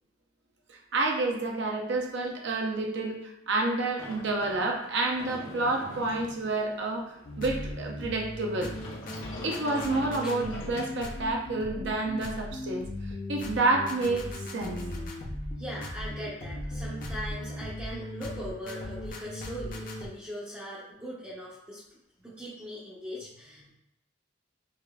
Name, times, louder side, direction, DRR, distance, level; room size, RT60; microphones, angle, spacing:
voice 1, 0.7-7.0 7.4-8.7 9.4-14.3 14.5-14.8, right 2 dB, 60° right, 1 dB, 0.6 m, -29 dB
Sliding door, 4.0-11.5, left 1 dB, 85° left, 0.9 m, -44 dB
sound 1, 7.2-20.1, left 1 dB, 45° left, 0.5 m, -37 dB
voice 2, 15.3-23.7, equal, 10° right, -9 dB, 0.6 m, -40 dB
5.1 x 2.5 x 2.3 m, 0.82 s
head